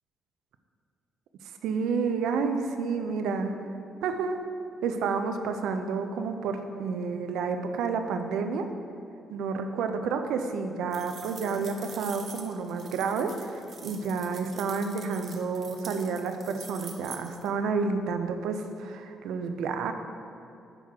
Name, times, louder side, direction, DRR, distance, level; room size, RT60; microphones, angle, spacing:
voice 1, 1.6-3.6 4.0-4.4 4.8-8.7 9.3-19.9, right 5 dB, 85° right, 7 dB, 0.5 m, -30 dB
sound 1, 10.9-17.5, right 5 dB, 50° right, 0.8 m, -45 dB
9.0 x 3.6 x 5.8 m, 2.8 s
cardioid pair, 90°, 0 cm